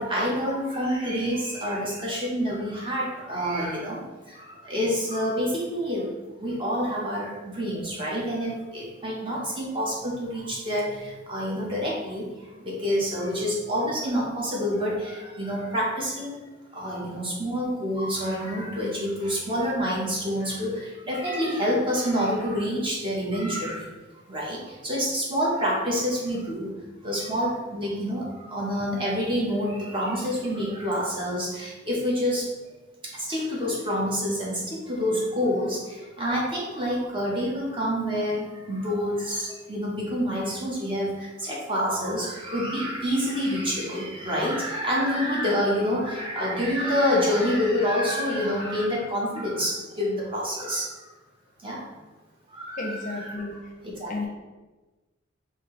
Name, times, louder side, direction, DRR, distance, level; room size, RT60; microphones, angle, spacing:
voice 1, 0.0-4.0 4.3-16.4 16.7-23.9 24.3-26.8 27.0-32.5 33.0-50.9 51.6-51.9 52.5-53.4 53.8-54.3, equal, 25° right, -4 dB, 1.0 m, -27 dB
voice 2, 52.8-53.5 54.1-54.3, left 2 dB, 40° left, 1 dB, 0.5 m, -32 dB
4.3 x 2.7 x 3.1 m, 1.2 s
head